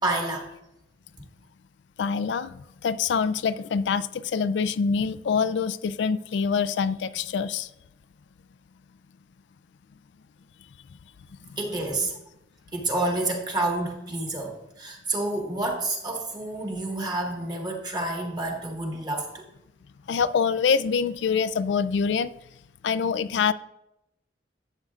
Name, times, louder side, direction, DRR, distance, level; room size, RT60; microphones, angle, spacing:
voice 1, 0.0-0.5 11.6-12.2 12.7-19.5, right 2 dB, 25° right, 0 dB, 1.6 m, -29 dB
voice 2, 2.0-7.7 11.4-11.6 20.1-22.3 22.8-23.5, left 6 dB, 85° left, 14 dB, 0.4 m, -25 dB
11.5 x 7.7 x 2.4 m, 0.84 s
head